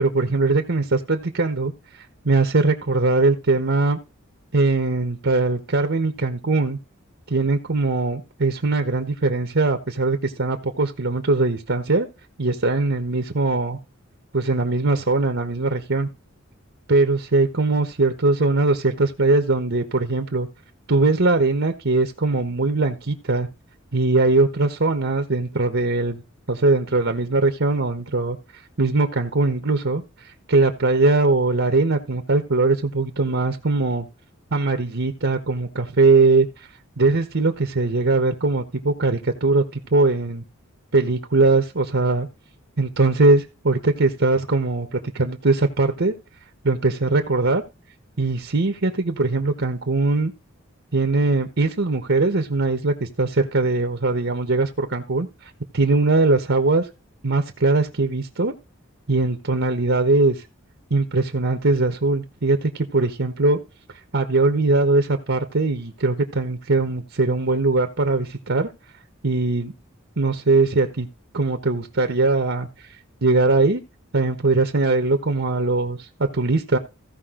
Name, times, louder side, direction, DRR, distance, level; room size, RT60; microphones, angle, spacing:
voice 1, 0.0-4.0 4.5-6.8 7.3-12.1 12.4-13.8 14.3-16.1 16.9-20.5 20.9-23.5 23.9-26.2 26.5-28.4 28.8-30.0 30.5-34.1 34.5-36.5 37.0-40.4 40.9-42.3 42.8-46.1 46.6-47.6 48.2-50.3 50.9-55.3 55.7-56.9 57.2-58.5 59.1-60.4 60.9-63.6 64.1-68.7 69.2-69.7 70.2-71.1 71.3-72.7 73.2-73.8 74.1-76.8, right 3 dB, 60° right, 6 dB, 1.2 m, -21 dB
16.0 x 5.3 x 3.8 m, 0.27 s
head